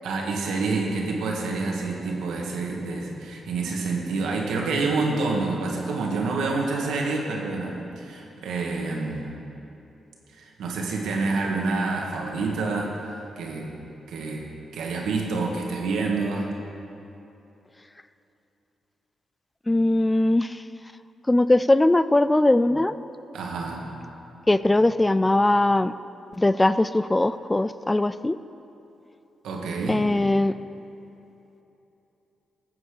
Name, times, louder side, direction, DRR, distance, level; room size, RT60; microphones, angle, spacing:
voice 1, 0.0-9.3 10.3-13.7 14.1-14.4 14.7-16.5 23.3-24.1 29.4-30.0, right 3 dB, 85° right, 0 dB, 1.6 m, -28 dB
voice 2, 19.7-20.6 21.3-22.9 24.5-25.9 26.4-28.4 29.9-30.5, left 2 dB, 15° left, 14 dB, 0.3 m, -20 dB
13.5 x 7.9 x 5.0 m, 3.0 s
supercardioid pair, 60°, 0 cm